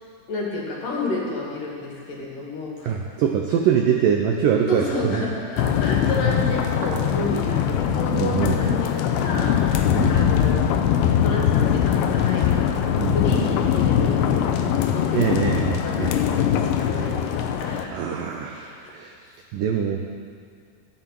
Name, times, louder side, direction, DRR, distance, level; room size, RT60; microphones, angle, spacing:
voice 1, 0.3-3.0 3.5-3.9 4.7-10.7 11.2-18.9, left 2 dB, 55° left, -3 dB, 3.6 m, -31 dB
voice 2, 2.8-5.2 6.8-7.0 8.1-8.6 9.9-10.1 13.0-13.4 15.2-16.2 17.9-19.1 19.5-20.0, right 8 dB, 85° right, 2 dB, 1.9 m, -23 dB
sound 1, 5.6-17.9, left 9 dB, 85° left, 3.1 m, -21 dB
13.5 x 11.0 x 7.6 m, 2.2 s
omnidirectional pair, 5.0 m